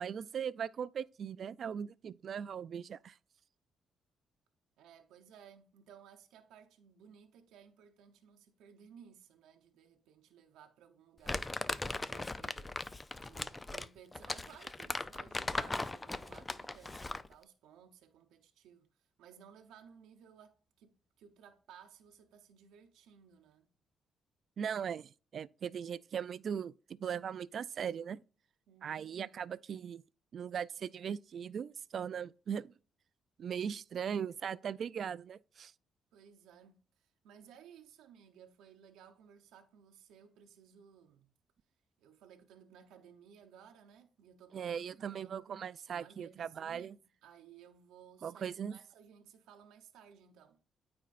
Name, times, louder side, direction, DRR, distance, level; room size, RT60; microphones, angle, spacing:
voice 1, 0.0-3.2 24.6-28.2 28.8-30.0 30.3-32.7 33.4-35.7 44.5-47.0 48.2-48.8, right 7 dB, 55° right, 0.3 m, -39 dB
voice 2, 4.8-11.5 12.0-12.9 13.2-18.9 19.2-23.7 28.7-29.3 36.1-41.3 42.0-45.6 45.9-46.9 47.2-50.6, right 8 dB, 90° right, 0.8 m, -58 dB
Crumpling crinkling, 11.3-17.3, left 2 dB, 20° left, 0.4 m, -38 dB
13.0 x 4.3 x 2.5 m
cardioid pair, 90°, 0 cm